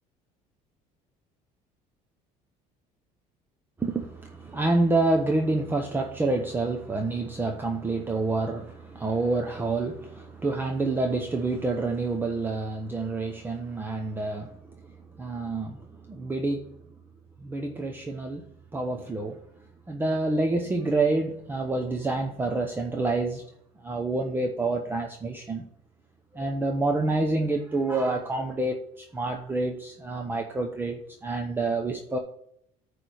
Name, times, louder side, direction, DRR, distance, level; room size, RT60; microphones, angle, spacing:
voice 1, 3.8-14.6 14.8-16.7 17.4-18.4 18.7-19.4 19.9-23.4 23.8-25.7 26.3-32.2, right 2 dB, 15° right, 3 dB, 0.8 m, -28 dB
9.5 x 3.4 x 6.3 m, 0.68 s
cardioid pair, 130°, 15 cm